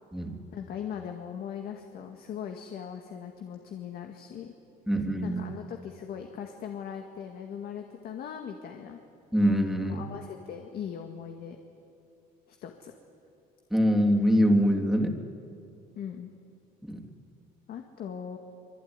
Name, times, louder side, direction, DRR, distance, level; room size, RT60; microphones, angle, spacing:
voice 1, 0.5-4.5 5.2-9.0 9.9-11.6 12.5-12.9 16.0-16.3 17.7-18.4, left 8 dB, 65° left, 4 dB, 2.0 m, -39 dB
voice 2, 4.9-5.4 9.3-10.0 13.7-15.2 16.8-17.0, equal, ahead, 2 dB, 3.1 m, -24 dB
26.0 x 22.5 x 9.8 m, 2.5 s
cardioid pair, 110°, 17 cm